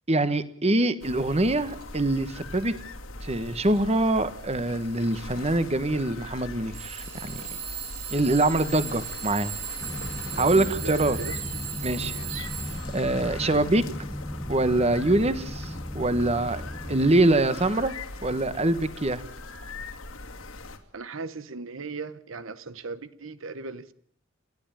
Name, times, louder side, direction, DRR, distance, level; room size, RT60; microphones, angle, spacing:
voice 1, 0.1-2.7 3.2-7.4 8.1-9.5 10.4-11.2 11.8-12.1 12.9-13.9 14.5-16.6 16.9-17.9 18.2-19.2, right 2 dB, 30° right, 1.2 m, -24 dB
sound 1, 1.0-20.8, left 2 dB, 75° left, 2.7 m, -41 dB
Alarm / Clock, 1.7-1.8 2.4-2.8 3.4-3.8 4.7-4.8 6.7-13.1, right 9 dB, 45° right, 6.5 m, -37 dB
sound 2, 9.8-17.3, equal, 10° left, 1.0 m, -36 dB
voice 2, 10.3-11.4 12.0-12.5 20.9-23.9, right 4 dB, 70° right, 0.9 m, -38 dB
29.5 x 11.5 x 8.9 m
head